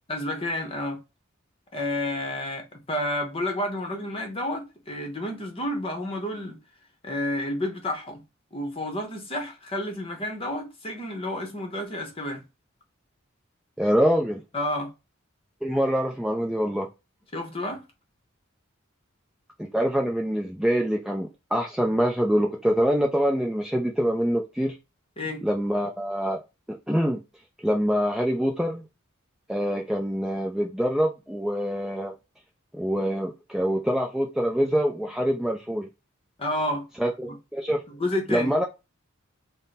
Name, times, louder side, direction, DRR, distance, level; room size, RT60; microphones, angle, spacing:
voice 1, 0.1-1.0 1.7-6.6 7.0-8.2 8.5-12.4 14.5-14.9 17.3-17.8 25.2-25.4 36.4-36.9 37.3-37.4 37.9-38.5, left 1 dB, 25° left, 0.9 m, -30 dB
voice 2, 13.8-14.4 15.6-16.9 19.7-24.8 25.4-26.4 26.9-27.2 27.6-28.8 29.5-32.1 32.7-35.9 37.0-37.8 38.3-38.6, equal, 5° right, 0.4 m, -25 dB
3.6 x 2.1 x 4.1 m
head